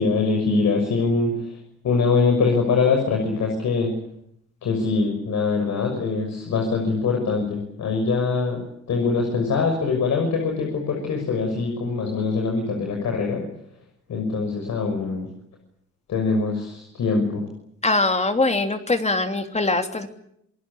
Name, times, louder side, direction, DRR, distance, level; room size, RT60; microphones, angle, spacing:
voice 1, 0.0-1.6 1.8-4.0 4.6-8.6 8.9-13.5 14.1-15.3 16.1-17.5, left 4 dB, 65° left, 3 dB, 6.2 m, -23 dB
voice 2, 17.8-20.1, left 2 dB, 20° left, 7 dB, 3.0 m, -22 dB
27.5 x 19.5 x 8.7 m, 0.74 s
cardioid pair, 90°, 30 cm